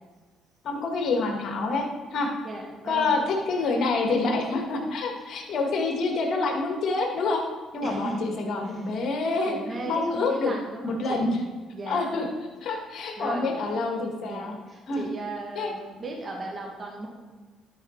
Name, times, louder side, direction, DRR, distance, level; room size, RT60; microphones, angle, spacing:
voice 1, 0.6-2.3 2.9-7.4 7.7-9.6 9.9-10.5 10.8-11.4 11.9-12.3 12.6-14.5 14.9-15.0 15.6-15.7, left 3 dB, 60° left, 2 dB, 1.8 m, -27 dB
voice 2, 2.4-3.2 7.8-8.9 9.5-11.3 11.7-12.1 13.2-13.5 14.2-17.1, right 2 dB, 40° right, 0 dB, 2.1 m, -37 dB
11.5 x 5.1 x 4.0 m, 1.3 s
supercardioid pair, 70°, 0 cm